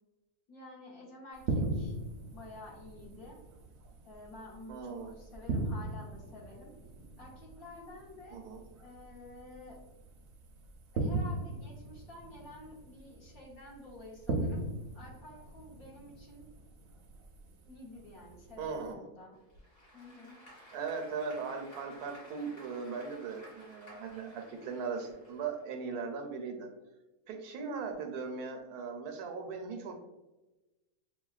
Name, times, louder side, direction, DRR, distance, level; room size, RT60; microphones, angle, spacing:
voice 1, 0.5-2.0 2.3-3.4 4.0-6.7 7.2-8.4 8.8-9.8 10.9-14.6 14.9-16.5 17.6-19.4 19.9-20.4, left 2 dB, 70° left, -3 dB, 1.5 m, -50 dB
sound 1, 1.4-18.9, right 2 dB, 60° right, 0.7 m, -40 dB
voice 2, 4.7-5.1 8.3-8.6 18.6-19.1 20.7-26.7 27.3-29.9, right 5 dB, 80° right, 4 dB, 1.1 m, -39 dB
Applause / Crowd, 19.3-25.9, equal, 55° left, 1.8 m, -55 dB
6.2 x 2.2 x 2.4 m, 1.1 s
omnidirectional pair, 1.6 m